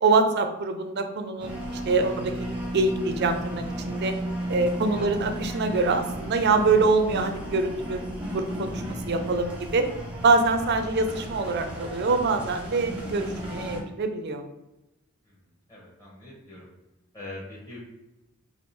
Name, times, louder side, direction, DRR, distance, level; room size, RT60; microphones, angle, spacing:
voice 1, 0.0-2.5 2.7-4.1 4.5-8.0 8.3-9.8 10.2-14.4, right 3 dB, 50° right, 7 dB, 0.5 m, -24 dB
sound 1, 1.4-13.8, right 1 dB, 5° right, 0.7 m, -34 dB
voice 2, 15.7-16.7 17.1-17.8, left 1 dB, 20° left, -7 dB, 1.0 m, -43 dB
3.6 x 2.4 x 4.1 m, 0.98 s
head